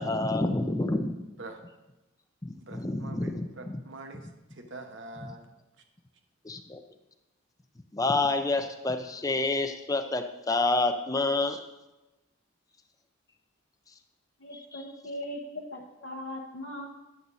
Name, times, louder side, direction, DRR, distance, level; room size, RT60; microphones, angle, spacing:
voice 1, 0.0-1.3 2.4-3.8 6.4-6.8 7.9-11.6 14.7-14.8, left 2 dB, 15° left, 6 dB, 0.5 m, -28 dB
voice 2, 2.6-5.5, right 2 dB, 55° right, 5 dB, 1.0 m, -45 dB
voice 3, 14.4-16.9, left 1 dB, 55° left, -2 dB, 0.9 m, -39 dB
9.7 x 7.4 x 4.1 m, 1.0 s
head